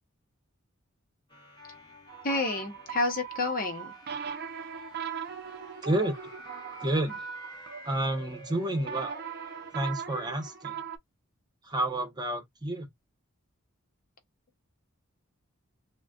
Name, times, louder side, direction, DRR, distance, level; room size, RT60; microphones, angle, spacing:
sound 1, 1.3-9.9, right 1 dB, 20° left, 1.2 m, -49 dB
sound 2, 2.1-11.0, right 7 dB, 50° right, 0.6 m, -40 dB
voice 1, 2.2-3.9, left 2 dB, 40° left, 0.9 m, -29 dB
voice 2, 5.8-6.2 6.8-7.3 7.8-9.2 9.7-10.8 11.6-12.9, right 1 dB, 20° right, 1.0 m, -30 dB
3.9 x 2.2 x 2.4 m
head